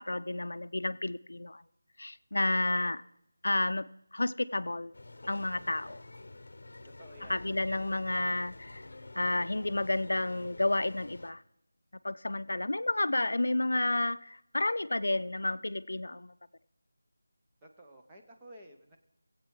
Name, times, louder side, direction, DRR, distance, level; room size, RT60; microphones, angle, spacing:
voice 1, 0.0-1.6 2.0-3.0 3.4-4.9 5.3-6.0 7.3-8.8 9.2-11.4 12.0-16.3, left 2 dB, 75° left, 14 dB, 0.4 m, -31 dB
voice 2, 2.3-3.0 6.8-8.0 17.6-19.0, equal, 5° right, -2 dB, 0.7 m, -54 dB
sound 1, 4.9-11.3, left 2 dB, 55° left, 0.9 m, -49 dB
20.0 x 8.1 x 4.7 m, 0.82 s
figure-of-eight pair, 175°, 0 cm